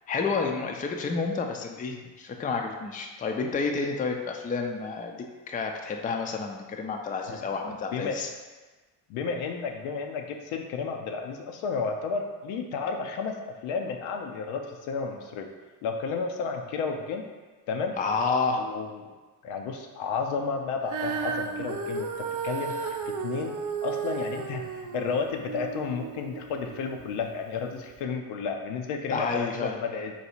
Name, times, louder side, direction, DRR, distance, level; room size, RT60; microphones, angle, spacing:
voice 1, 0.1-8.3 18.0-18.6 29.1-29.8, left 4 dB, 15° left, 3 dB, 0.4 m, -30 dB
voice 2, 9.1-13.3 13.6-15.5 15.8-17.2 17.7-17.9 18.6-19.1 19.4-22.1 22.4-22.8 23.1-23.6 23.8-30.1, left 5 dB, 75° left, 3 dB, 0.7 m, -32 dB
Female singing, 20.9-27.2 27.9-28.0, right 5 dB, 40° right, 0.5 m, -34 dB
4.1 x 2.3 x 4.4 m, 1.3 s
hypercardioid pair, 55°, 50 cm